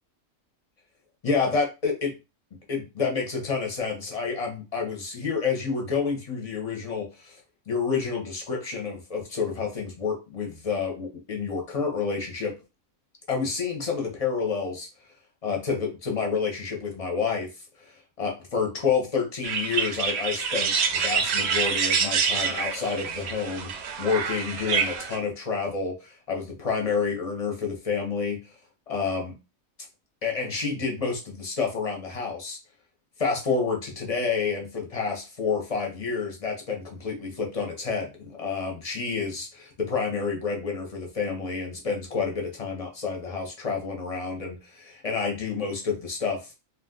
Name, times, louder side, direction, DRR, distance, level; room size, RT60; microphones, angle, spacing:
voice 1, 1.2-2.1 2.7-7.4 7.7-12.5 13.3-14.9 15.4-17.5 17.9-28.4 28.9-29.4 30.2-32.6 33.2-46.5, left 5 dB, 35° left, 1 dB, 0.6 m, -29 dB
sound 1, 19.4-25.2, right 6 dB, 65° right, 0.7 m, -27 dB
2.4 x 2.4 x 3.6 m, 0.28 s
omnidirectional pair, 1.4 m